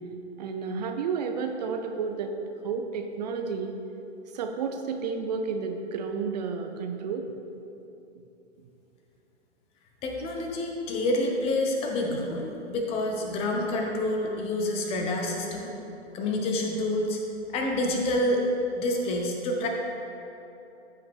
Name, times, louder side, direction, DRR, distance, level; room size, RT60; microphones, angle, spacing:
voice 1, 0.4-2.3 2.6-3.7 4.3-7.3, right 5 dB, 35° right, 5 dB, 0.6 m, -31 dB
voice 2, 10.0-15.7 16.1-17.2 17.5-18.4 18.8-19.7, left 1 dB, 15° left, 1 dB, 0.7 m, -28 dB
14.0 x 5.6 x 3.5 m, 2.9 s
figure-of-eight pair, 125°, 35 cm